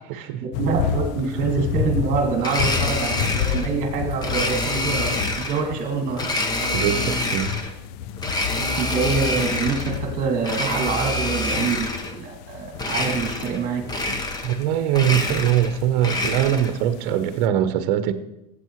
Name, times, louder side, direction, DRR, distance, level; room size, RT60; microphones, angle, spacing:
voice 1, 0.1-6.3 8.8-13.9, right 5 dB, 40° right, 2.0 m, -26 dB
sound 1, 0.5-17.4, left 9 dB, 55° left, 0.5 m, -31 dB
Domestic sounds home sounds, 2.4-3.7 4.2-5.6 6.2-7.7 8.2-10.0 10.4-12.2 12.8-13.6 13.9-14.6 14.9-16.8, left 2 dB, 20° left, 1.1 m, -26 dB
voice 2, 6.7-7.5 8.6-8.7 14.4-18.1, right 10 dB, 60° right, 0.9 m, -22 dB
13.5 x 7.9 x 3.2 m
supercardioid pair, 120°, 21 cm